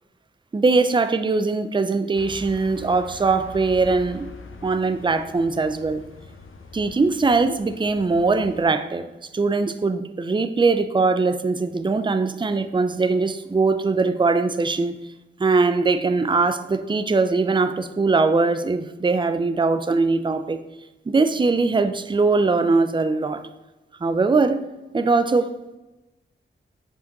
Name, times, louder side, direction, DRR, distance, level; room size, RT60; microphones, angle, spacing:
voice 1, 0.5-4.3 4.6-6.0 6.7-9.1 9.3-14.9 15.4-20.6 21.1-23.4 24.0-24.6 24.9-25.5, right 3 dB, 25° right, 10 dB, 0.4 m, -21 dB
sound 1, 2.1-8.6, left 4 dB, 75° left, 0.8 m, -43 dB
5.5 x 5.1 x 5.1 m, 1.1 s
wide cardioid pair, 70°, 21 cm